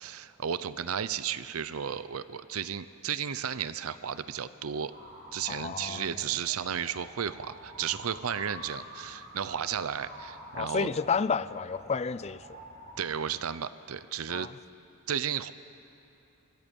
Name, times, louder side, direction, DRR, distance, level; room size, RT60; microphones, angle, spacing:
voice 1, 0.0-4.9 5.3-10.9 13.0-14.5 15.1-15.5, right 8 dB, 75° right, 15 dB, 0.6 m, -33 dB
sound 1, 4.9-13.0, equal, 45° right, 6.5 m, -48 dB
voice 2, 5.5-6.1 10.5-12.6 14.3-14.5, left 5 dB, 30° left, 17 dB, 0.4 m, -31 dB
25.0 x 23.5 x 5.3 m, 2.8 s
head